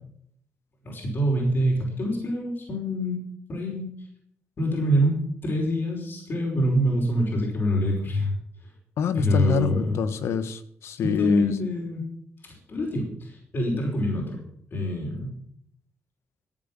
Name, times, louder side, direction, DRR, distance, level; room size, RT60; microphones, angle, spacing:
voice 1, 0.9-3.2 3.5-3.9 4.6-5.2 5.4-8.3 9.1-10.0 11.0-12.0 12.7-14.4 14.7-15.4, equal, 50° left, -1 dB, 5.3 m, -25 dB
voice 2, 9.0-11.5, left 7 dB, 80° left, 12 dB, 1.3 m, -26 dB
15.0 x 9.0 x 7.4 m, 0.68 s
cardioid pair, 100°, 4 cm